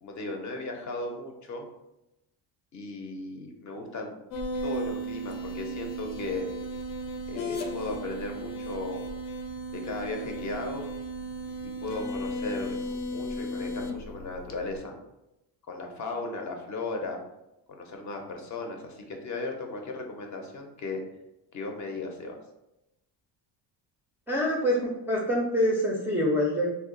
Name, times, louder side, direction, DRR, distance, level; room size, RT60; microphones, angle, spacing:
voice 1, 0.0-1.7 2.7-4.2 4.6-6.5 7.3-9.0 9.7-10.9 11.6-12.8 13.1-14.9 15.7-17.2 17.7-21.0 21.5-22.4, left 2 dB, 40° left, 3 dB, 0.6 m, -36 dB
sound 1, 4.3-14.8, equal, 75° left, 0.7 m, -35 dB
voice 2, 24.3-26.7, equal, 5° right, -4 dB, 0.3 m, -25 dB
2.8 x 2.3 x 3.7 m, 0.92 s
cardioid pair, 145°, 45 cm